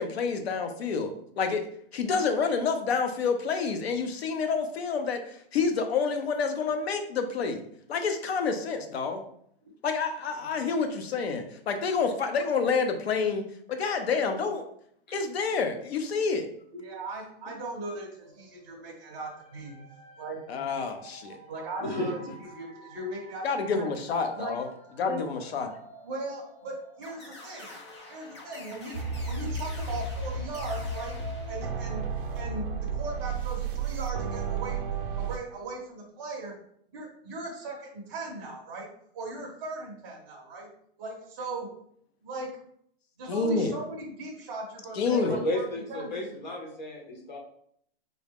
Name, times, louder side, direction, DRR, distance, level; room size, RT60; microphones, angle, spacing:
voice 1, 0.0-1.1 1.4-1.6 1.9-7.6 7.9-9.2 9.8-14.6 15.1-16.5 20.5-21.4 23.4-24.7 25.0-25.7 43.3-43.7 44.9-45.4, left 5 dB, 85° left, 6 dB, 0.7 m, -28 dB
voice 2, 16.7-19.7 20.2-20.4 21.5-22.2 22.5-23.9 24.3-24.6 25.0-25.2 26.0-27.8 28.1-29.0 29.2-31.2 31.5-32.1 32.3-34.8 35.2-36.5 36.9-38.9 39.1-40.7 41.0-41.7 42.2-42.6 43.2-46.1, right 2 dB, 20° right, -3 dB, 0.6 m, -38 dB
sound 1, 18.2-33.4, right 1 dB, 15° left, 0.8 m, -50 dB
voice 3, 21.8-22.3 45.3-47.4, left 1 dB, 50° left, 0 dB, 0.9 m, -33 dB
sound 2, 27.0-32.2, left 2 dB, 30° left, 0.4 m, -48 dB
sound 3, 28.9-35.4, right 4 dB, 60° right, 0.5 m, -33 dB
3.6 x 2.0 x 3.5 m, 0.67 s
hypercardioid pair, 175°, 30 cm